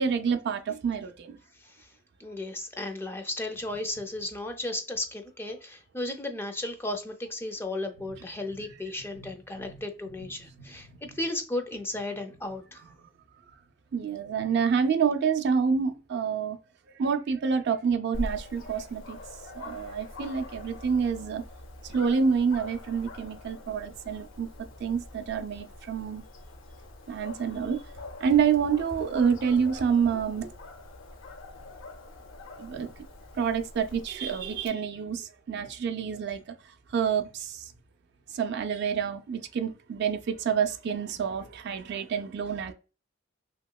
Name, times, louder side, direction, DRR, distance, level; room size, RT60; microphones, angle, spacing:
voice 1, 0.0-1.4 9.1-9.3 9.6-9.8 10.6-11.0 13.9-16.6 17.0-19.2 19.6-21.4 21.8-24.5 24.8-26.2 27.1-27.8 28.2-30.5 32.6-33.0 33.3-36.4 36.9-37.7 38.3-42.7, right 6 dB, 55° right, 0.4 m, -28 dB
voice 2, 1.6-1.9 2.2-12.8, left 2 dB, 10° left, 0.4 m, -35 dB
Dog, 18.1-34.7, left 2 dB, 75° left, 0.5 m, -44 dB
2.9 x 2.9 x 2.2 m
head